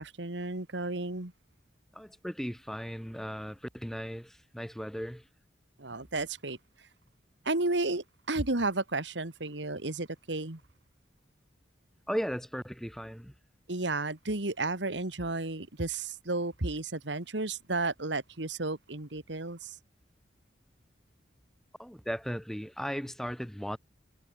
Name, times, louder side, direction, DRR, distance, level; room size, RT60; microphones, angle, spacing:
voice 1, 0.0-1.3 5.8-6.6 7.5-10.6 13.7-19.8, right 2 dB, 80° right, 2.2 m, -33 dB
voice 2, 1.9-5.2 12.1-13.3 21.8-23.8, equal, ahead, 5.3 m, -36 dB
head